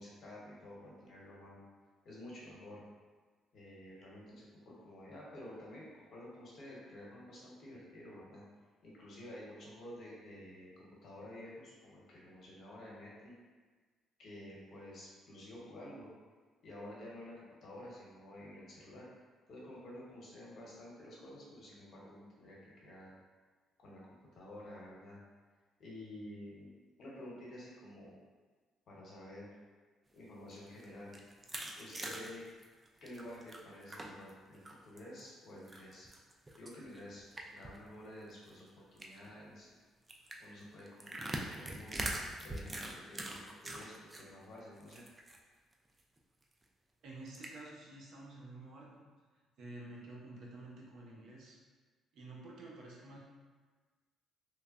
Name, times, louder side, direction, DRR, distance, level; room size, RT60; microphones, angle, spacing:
voice 1, 0.0-1.6 2.0-2.8 3.5-8.4 8.8-13.3 14.2-16.1 16.6-19.1 19.5-23.1 23.8-24.0 24.3-25.2 25.8-26.7 27.0-28.2 28.9-29.5 30.1-31.2 31.8-32.4 33.0-36.1 36.6-39.8 40.4-42.0 42.4-45.0, left 1 dB, 60° left, -5 dB, 0.9 m, -51 dB
sound 1, 30.4-34.3 34.7-35.2 35.7-37.8 38.1-38.2 38.4-38.6 39.0-39.3 40.1-44.2 44.6-45.4 45.7-45.8 46.2-46.3 47.3-47.5, right 1 dB, 20° right, 0.3 m, -43 dB
voice 2, 47.0-49.1 49.6-51.6 52.1-53.2, right 2 dB, 70° right, -3 dB, 0.6 m, -50 dB
3.2 x 2.0 x 2.4 m, 1.4 s
cardioid pair, 95°, 0 cm